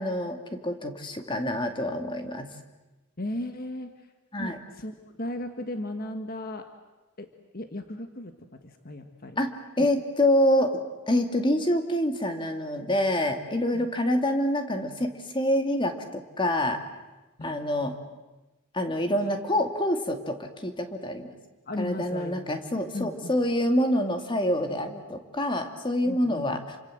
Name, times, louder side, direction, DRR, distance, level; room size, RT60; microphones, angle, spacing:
voice 1, 0.0-2.5 4.3-4.6 9.4-10.7 11.1-16.8 17.4-18.0 18.7-21.3 21.8-26.6, left 1 dB, 25° left, 6 dB, 2.3 m, -26 dB
voice 2, 3.2-4.1 4.4-6.7 7.2-9.4 13.7-13.9 17.4-17.7 21.7-23.4 26.0-26.4, left 1 dB, 45° left, 7 dB, 1.5 m, -36 dB
29.0 x 25.5 x 7.8 m, 1.1 s
head